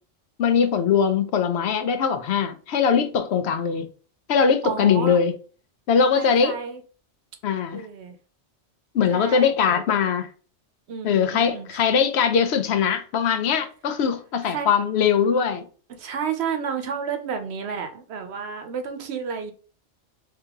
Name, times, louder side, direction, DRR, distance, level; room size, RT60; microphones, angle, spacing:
voice 1, 0.4-3.9 4.3-5.3 5.9-6.5 7.4-7.8 8.9-10.3 11.0-15.6, left 6 dB, 70° left, 0.8 m, -21 dB
voice 2, 4.6-5.2 6.2-6.8 7.7-8.2 9.1-9.8 10.9-11.8 14.4-14.7 16.0-19.5, right 6 dB, 70° right, 0.9 m, -31 dB
3.4 x 2.9 x 3.5 m
omnidirectional pair, 1.2 m